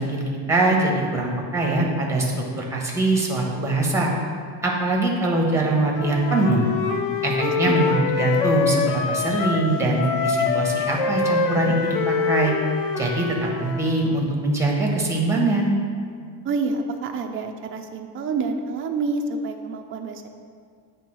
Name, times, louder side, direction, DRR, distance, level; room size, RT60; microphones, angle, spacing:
voice 1, 0.0-4.1 4.6-6.7 7.2-12.5 13.0-13.3 13.6-15.7, right 2 dB, 5° right, -1 dB, 1.1 m, -22 dB
Wind instrument woodwind instrument, 5.9-9.7 10.0-14.0, left 5 dB, 75° left, 0.8 m, -25 dB
voice 2, 7.4-7.8 16.4-20.3, right 4 dB, 30° right, 3 dB, 0.5 m, -28 dB
8.4 x 3.5 x 6.1 m, 2.1 s
cardioid pair, 145°, 42 cm